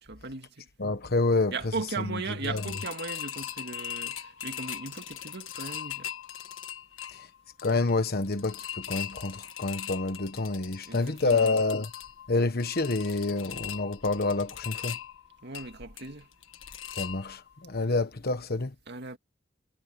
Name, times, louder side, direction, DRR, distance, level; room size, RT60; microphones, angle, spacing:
voice 1, 0.0-0.7 1.5-6.1 10.9-11.6 15.4-16.3 18.9-19.2, right 3 dB, 60° right, 2.2 m, -37 dB
voice 2, 0.8-1.5 2.0-2.2 2.5-2.6 7.1-7.3 7.6-11.9 12.3-15.0 17.0-18.7, left 3 dB, 50° left, 1.2 m, -28 dB
sound 1, 2.4-17.6 18.0-18.1 18.4-18.5, left 11 dB, 90° left, 1.5 m, -40 dB
head